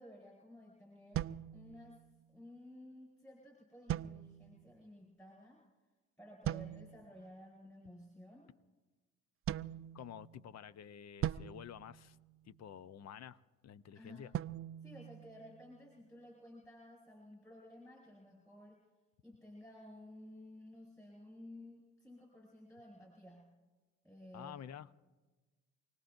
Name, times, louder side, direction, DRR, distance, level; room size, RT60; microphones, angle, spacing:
voice 1, 0.0-2.0 2.3-5.6 6.2-8.5 13.9-14.3 14.8-18.8 19.2-23.5 24.0-24.6, left 1 dB, 10° left, 4.9 m, -55 dB
sound 1, 1.1-2.2 3.9-4.7 6.4-7.1 9.5-10.5 11.2-12.7 14.3-15.8, right 12 dB, 35° right, 0.4 m, -41 dB
voice 2, 9.9-12.2 12.4-14.3 24.3-24.9, left 9 dB, 45° left, 0.7 m, -50 dB
28.0 x 18.5 x 2.6 m
hypercardioid pair, 45°, 38 cm